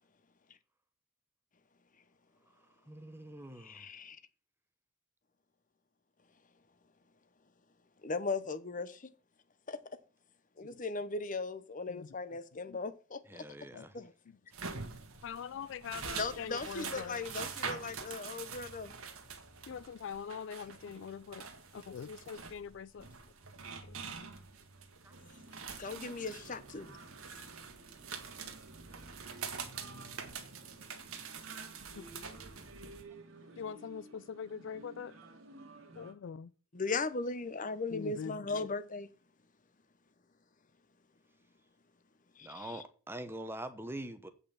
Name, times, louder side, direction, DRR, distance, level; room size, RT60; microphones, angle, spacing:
voice 1, 2.9-3.9 13.3-14.0 25.0-25.2 42.4-44.3, right 1 dB, 10° right, 0.9 m, -44 dB
voice 2, 3.6-4.2 8.0-9.1 9.7-10.0 10.6-13.5 13.9-14.1 16.2-18.9 25.8-27.0 36.7-39.1 42.4-42.8, left 3 dB, 40° left, 0.8 m, -38 dB
voice 3, 13.7-14.1 15.2-17.2 19.7-21.5 21.7-23.1 23.8-24.3 25.5-25.6 26.1-26.2 32.0-32.2 33.6-35.2 36.0-36.5 37.9-38.4, left 7 dB, 60° left, 0.3 m, -43 dB
sound 1, 14.5-33.0, right 5 dB, 85° right, 1.6 m, -45 dB
sound 2, 25.1-36.1, right 2 dB, 70° right, 1.9 m, -54 dB
8.5 x 5.2 x 7.1 m
head